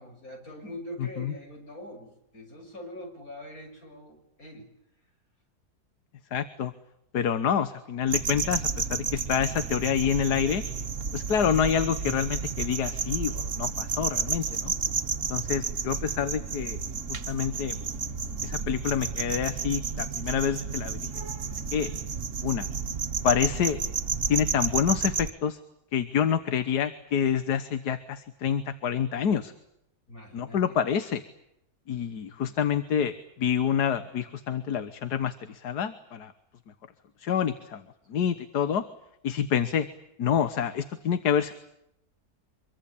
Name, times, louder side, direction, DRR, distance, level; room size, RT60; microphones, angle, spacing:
voice 1, 0.0-4.7 30.1-30.8 32.3-32.6 38.1-38.3, left 1 dB, 60° left, 3 dB, 7.0 m, -43 dB
voice 2, 6.3-6.7 7.1-10.6 11.1-14.7 15.3-16.8 17.1-17.8 18.4-21.1 21.7-21.9 22.4-22.7 23.2-23.8 24.3-25.6 25.9-29.5 30.3-31.2 31.9-36.3 37.2-37.8 38.1-38.8 39.2-39.9 40.2-41.5, left 8 dB, 80° left, 11 dB, 1.8 m, -27 dB
sound 1, 8.1-25.3, right 5 dB, 50° right, 1.6 m, -31 dB
26.0 x 23.5 x 8.5 m, 0.79 s
omnidirectional pair, 1.7 m